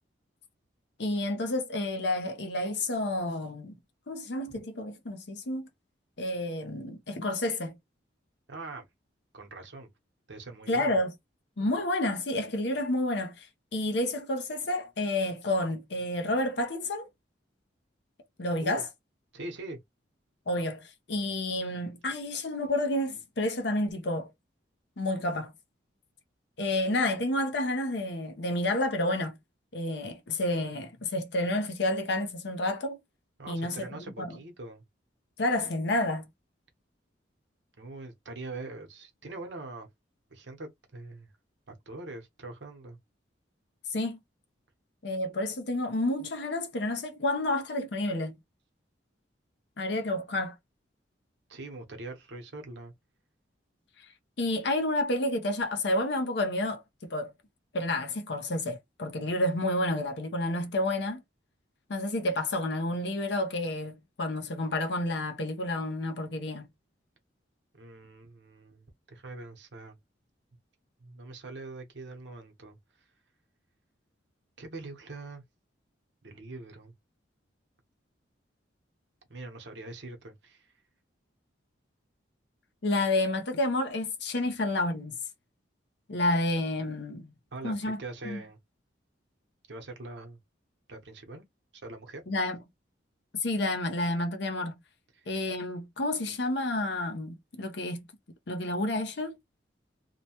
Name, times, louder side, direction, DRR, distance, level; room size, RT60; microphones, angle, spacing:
voice 1, 1.0-3.8 4.1-5.7 6.2-7.8 10.7-11.1 11.6-17.1 18.4-18.9 20.5-24.3 25.0-25.5 26.6-29.4 29.7-33.0 33.5-33.8 34.2-34.4 35.4-36.3 43.9-44.2 45.0-48.4 49.8-50.6 54.0-54.1 54.4-57.3 57.7-61.2 61.9-66.7 82.8-85.1 86.1-87.3 87.6-88.0 88.2-88.4 92.3-92.6 93.4-94.7 95.3-98.0 98.5-99.4, left 1 dB, 65° left, 0.7 m, -30 dB
voice 2, 8.5-8.9 9.3-9.9 10.3-11.0 18.6-18.8 19.3-19.8 33.4-34.8 37.8-39.9 40.3-41.3 41.7-43.0 51.5-52.9 67.7-70.0 71.0-72.8 74.6-75.4 76.2-76.9 79.3-80.7 84.4-84.5 87.5-88.6 89.7-90.4 90.9-91.4 91.8-92.2 95.1-95.3, right 2 dB, 65° right, 0.9 m, -43 dB
2.8 x 2.2 x 2.8 m
head